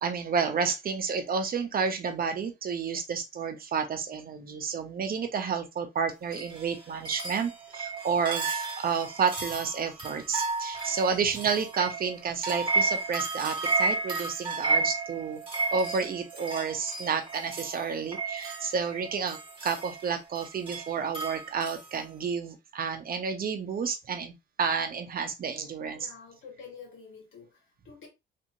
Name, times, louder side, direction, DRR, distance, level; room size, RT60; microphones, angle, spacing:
voice 1, 0.0-15.4 15.7-26.1, right 6 dB, 45° right, 0.8 m, -30 dB
sound 1, 6.3-21.9, right 3 dB, 25° right, 1.8 m, -33 dB
voice 2, 25.9-28.1, left 6 dB, 75° left, 1.9 m, -48 dB
3.4 x 2.8 x 2.7 m
cardioid pair, 90°, 20 cm